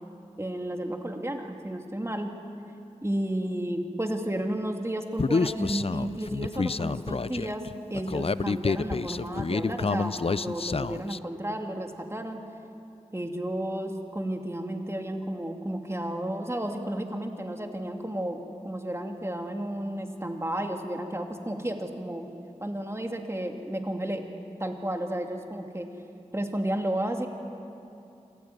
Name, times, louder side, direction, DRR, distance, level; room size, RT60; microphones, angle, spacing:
voice 1, 0.4-2.3 3.0-12.4 13.1-22.3 22.6-24.3 24.6-25.9 26.3-27.3, right 1 dB, 20° right, 3 dB, 2.7 m, -32 dB
Human voice, 5.2-11.2, left 4 dB, 50° left, 0.5 m, -28 dB
27.0 x 15.5 x 9.5 m, 2.7 s
wide cardioid pair, 45°, 13 cm